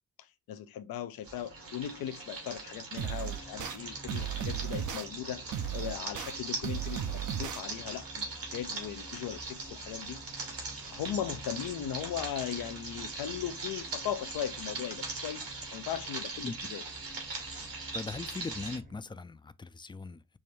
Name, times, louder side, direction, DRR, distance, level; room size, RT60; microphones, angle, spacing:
voice 1, 0.5-10.2 10.9-16.8, left 10 dB, 80° left, 0.5 m, -38 dB
sound 1, 1.2-18.8, right 3 dB, 75° right, 2.0 m, -41 dB
sound 2, 3.0-3.8 4.1-5.0 5.5-6.3 6.6-7.6, right 9 dB, 60° right, 0.6 m, -35 dB
sound 3, 3.1-19.0, equal, 25° right, 0.8 m, -52 dB
voice 2, 17.9-20.4, left 4 dB, 15° left, 0.3 m, -40 dB
5.4 x 2.2 x 3.1 m
cardioid pair, 50°, 35 cm